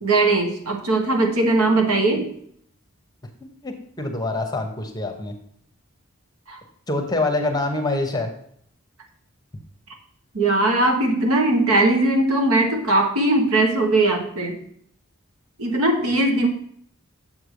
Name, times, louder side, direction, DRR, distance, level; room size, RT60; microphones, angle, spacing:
voice 1, 0.0-2.3 6.5-6.6 10.3-14.6 15.6-16.5, right 2 dB, 80° right, 1 dB, 1.4 m, -19 dB
voice 2, 3.6-5.3 6.9-8.3 16.0-16.1, left 2 dB, 20° left, 4 dB, 0.8 m, -25 dB
7.3 x 3.3 x 6.3 m, 0.66 s
head